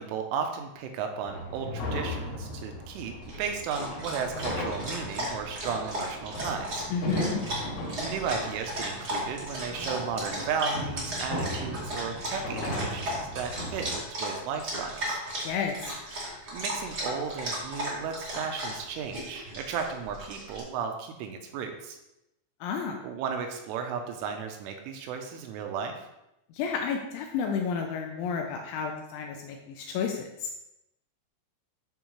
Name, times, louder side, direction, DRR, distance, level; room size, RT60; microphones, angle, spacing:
voice 1, 0.0-6.9 8.0-15.2 16.5-22.0 23.0-26.1, right 6 dB, 80° right, 4 dB, 3.1 m, -34 dB
sound 1, 1.3-13.9, left 1 dB, 65° left, 4.9 m, -37 dB
Dog, 3.2-20.6, equal, 50° right, 1.1 m, -36 dB
voice 2, 6.9-7.4 15.4-15.7 22.6-23.0 26.5-30.5, left 6 dB, 80° left, 2 dB, 2.8 m, -31 dB
13.0 x 4.8 x 3.1 m, 0.88 s
omnidirectional pair, 5.9 m